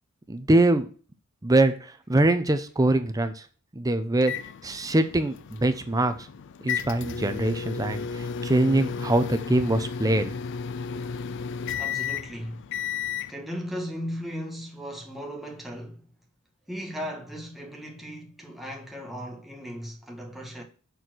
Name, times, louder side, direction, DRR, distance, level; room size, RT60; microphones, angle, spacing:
voice 1, 0.3-0.8 1.4-3.4 3.7-4.3 4.6-6.1 6.6-10.3, right 2 dB, 15° right, 0.6 m, -23 dB
sound 1, 4.2-13.3, left 6 dB, 60° left, 0.4 m, -33 dB
voice 2, 11.7-12.7 13.3-16.0 16.7-20.6, equal, ahead, 1.4 m, -37 dB
6.8 x 4.3 x 6.1 m
head